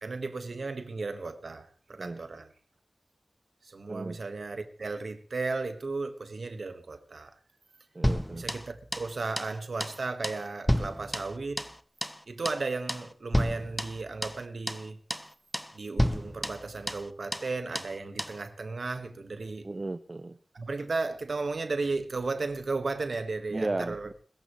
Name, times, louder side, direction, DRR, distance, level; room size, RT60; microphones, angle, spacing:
voice 1, 0.0-2.5 3.6-7.4 8.3-11.6 12.3-15.0 15.7-19.7 20.5-24.1, right 3 dB, 85° right, 1.5 m, -35 dB
voice 2, 7.9-8.4 19.6-20.4 23.5-24.1, right 2 dB, 50° right, 0.7 m, -34 dB
sound 1, 8.0-9.1 9.4-9.5 9.8-10.0 10.2-11.8 12.0-12.2 12.4-12.6 12.9-13.1 13.3-14.4 14.7-14.8 15.1-15.3 15.5-15.7 16.0-17.1 17.3-17.5 17.7-17.9 18.2-18.4, equal, 5° left, 1.1 m, -31 dB
22.0 x 14.5 x 3.2 m
cardioid pair, 45°, 0 cm